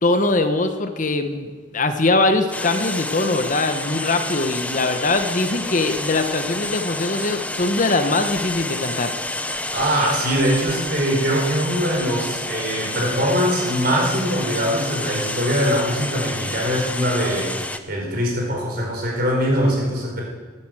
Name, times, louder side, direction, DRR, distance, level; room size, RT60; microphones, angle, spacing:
voice 1, 0.0-9.1, left 2 dB, 40° left, 8 dB, 1.0 m, -21 dB
sound 1, 2.5-17.8, left 2 dB, 5° left, 0.7 m, -29 dB
voice 2, 9.7-17.5 17.9-20.2, equal, 50° right, -1 dB, 4.8 m, -22 dB
14.5 x 11.0 x 7.8 m, 1.5 s
head